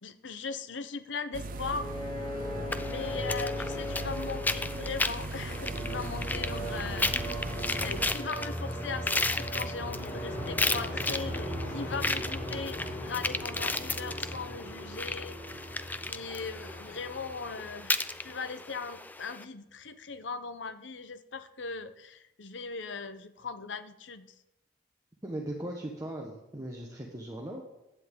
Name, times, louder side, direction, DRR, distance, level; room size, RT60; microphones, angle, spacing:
voice 1, 0.0-2.0 2.8-7.5 7.8-15.4 16.0-24.3, left 4 dB, 80° left, 12 dB, 0.8 m, -39 dB
sound 1, 1.3-8.1, right 2 dB, 50° right, 0.6 m, -39 dB
sound 2, 1.4-18.3, equal, 35° left, 4.1 m, -38 dB
sound 3, 2.7-19.4, left 3 dB, 10° left, 0.4 m, -35 dB
voice 2, 25.2-27.6, right 1 dB, 20° right, -1 dB, 1.2 m, -38 dB
15.5 x 10.0 x 3.8 m, 0.94 s
head